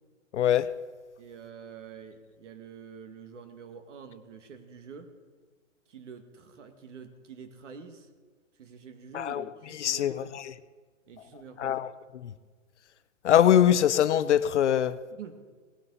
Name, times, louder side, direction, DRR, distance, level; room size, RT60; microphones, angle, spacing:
voice 1, 0.3-0.7 9.1-9.4 9.8-10.4 11.6-12.3 13.2-15.0, left 10 dB, 60° left, 15 dB, 0.8 m, -23 dB
voice 2, 1.2-5.1 5.9-8.1 8.6-10.3 11.1-11.8 15.1-15.4, right 6 dB, 65° right, 8 dB, 2.1 m, -47 dB
18.0 x 15.0 x 4.1 m, 1.5 s
hypercardioid pair, 155°, 40 cm